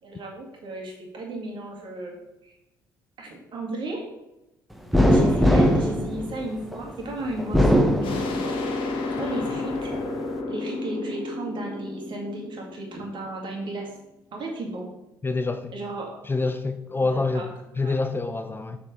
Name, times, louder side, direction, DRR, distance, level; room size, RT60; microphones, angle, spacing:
voice 1, 0.0-2.2 2.4-2.6 3.2-4.0 5.1-9.9 10.5-13.9 14.3-14.9 15.7-16.2 17.1-17.5 17.8-18.0, right 2 dB, 50° right, 0 dB, 2.0 m, -34 dB
sound 1, 4.9-6.8 7.4-8.7 9.2-10.1, equal, ahead, 1.0 m, -20 dB
sound 2, 8.0-13.5, left 3 dB, 55° left, 1.0 m, -31 dB
voice 2, 15.2-15.7 16.2-17.5 17.8-18.8, left 3 dB, 20° left, 8 dB, 0.5 m, -26 dB
6.8 x 5.8 x 3.8 m, 0.94 s
figure-of-eight pair, 50°, 11 cm